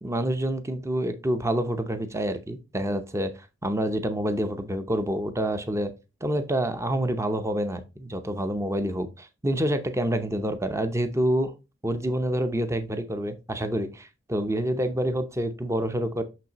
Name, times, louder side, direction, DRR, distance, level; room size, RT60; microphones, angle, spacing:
voice 1, 0.0-3.3 3.6-5.9 6.2-11.5 11.8-16.2, right 1 dB, 15° right, 0.6 m, -27 dB
6.4 x 6.0 x 2.9 m
head